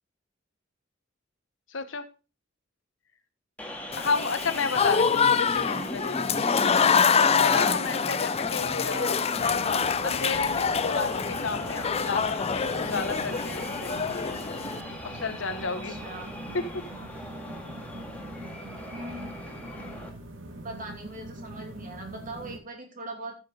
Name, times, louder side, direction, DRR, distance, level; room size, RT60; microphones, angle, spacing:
voice 1, 1.7-2.0 4.0-6.5 7.0-9.2 9.6-14.0 15.0-16.0 16.5-16.8, left 4 dB, 70° left, 10 dB, 1.0 m, -32 dB
sound 1, 3.6-20.1, left 1 dB, 5° left, 1.9 m, -38 dB
Applause / Crowd, 3.9-14.8, left 6 dB, 30° left, 0.5 m, -26 dB
sound 2, 9.3-22.6, right 1 dB, 75° right, 1.7 m, -43 dB
voice 2, 15.6-16.3 18.9-19.3 20.6-23.4, right 1 dB, 45° right, 3 dB, 2.8 m, -40 dB
14.0 x 6.5 x 3.8 m, 0.32 s
head